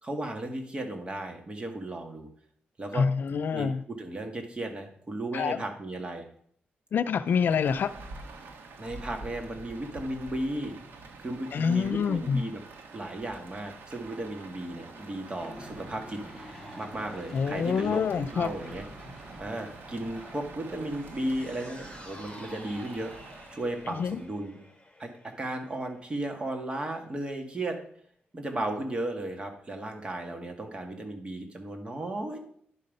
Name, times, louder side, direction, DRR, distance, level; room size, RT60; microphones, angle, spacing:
voice 1, 0.0-2.3 2.8-3.1 3.5-6.2 8.8-10.7 11.2-12.6 12.9-18.8 19.4-23.1 23.5-24.6 25.0-25.1 25.4-27.8 28.3-32.4, right 1 dB, 30° right, 4 dB, 1.8 m, -35 dB
voice 2, 2.9-3.8 5.3-5.6 6.9-7.9 11.5-12.4 17.3-18.5 24.0-24.2, left 6 dB, 65° left, 13 dB, 0.4 m, -26 dB
Rain, 7.3-24.3, right 3 dB, 80° right, 1.4 m, -47 dB
Aircraft / Engine, 14.6-22.6, left 1 dB, ahead, 2.3 m, -50 dB
sound 1, 20.7-27.2 27.5-27.6, left 1 dB, 20° left, 3.0 m, -51 dB
10.5 x 5.5 x 5.3 m, 0.62 s
cardioid pair, 95°, 4 cm